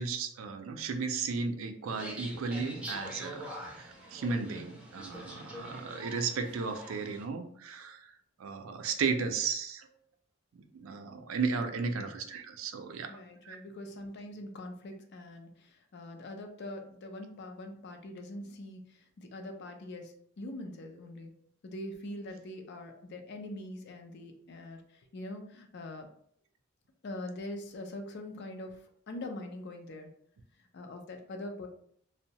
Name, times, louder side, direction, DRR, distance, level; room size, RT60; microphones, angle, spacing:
voice 1, 0.0-3.5 3.8-8.1 8.4-9.9 10.6-13.1 13.5-13.6, right 5 dB, 80° right, 7 dB, 0.4 m, -34 dB
sound 1, 1.9-7.2, equal, 5° right, 0.5 m, -44 dB
voice 2, 13.0-21.3 21.6-26.1 27.0-30.1 30.6-31.7, left 1 dB, 55° left, 5 dB, 0.4 m, -43 dB
2.6 x 2.1 x 2.8 m, 0.63 s
head